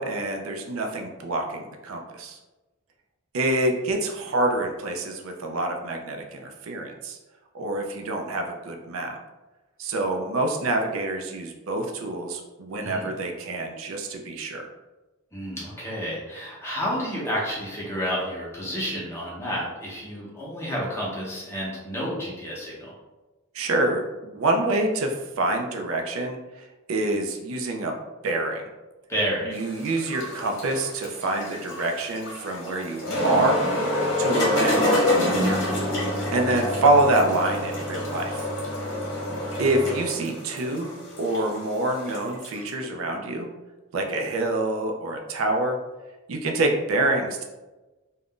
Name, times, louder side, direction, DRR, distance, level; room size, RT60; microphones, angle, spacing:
voice 1, 0.0-2.4 3.3-7.2 7.5-9.2 9.8-14.7 23.5-27.9 28.2-28.6 29.5-33.6 34.2-35.6 36.3-38.5 39.6-43.5 43.9-45.8 46.3-47.4, right 2 dB, 70° right, 3 dB, 0.4 m, -26 dB
voice 2, 12.8-13.1 15.3-22.9 29.1-29.6, equal, 10° left, -6 dB, 0.7 m, -30 dB
sound 1, 29.5-42.6, left 1 dB, 60° left, 0.8 m, -27 dB
2.4 x 2.1 x 3.6 m, 1.1 s
head